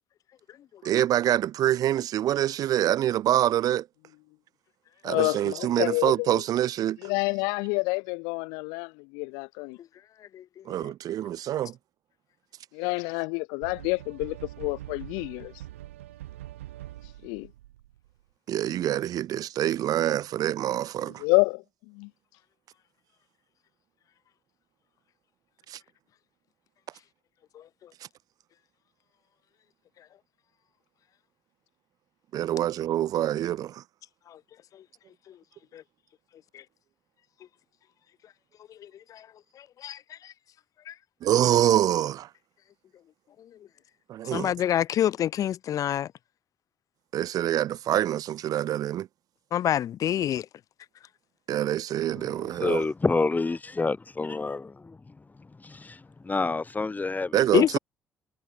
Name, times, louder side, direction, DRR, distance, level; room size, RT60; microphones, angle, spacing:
voice 1, 0.8-3.9 5.0-7.0 10.6-11.8 18.5-21.2 25.7-25.8 32.3-33.8 41.2-42.3 44.1-44.5 47.1-49.1 51.5-52.9 57.3-57.8, right 12 dB, 65° right, 1.6 m, -25 dB
voice 2, 5.0-6.3 7.0-9.8 12.7-15.5 17.2-17.5 21.2-22.1, left 33 dB, 80° left, 1.3 m, -28 dB
sound 1, 13.6-18.1, right 14 dB, 90° right, 2.7 m, -43 dB
voice 3, 38.8-39.2 39.8-40.0 40.2-40.3 40.9-41.0 44.3-46.1 49.5-50.5 57.5-57.8, left 11 dB, 55° left, 0.5 m, -26 dB
voice 4, 52.1-54.7 55.6-57.4, left 3 dB, 25° left, 1.0 m, -28 dB
hypercardioid pair, 50°, 7 cm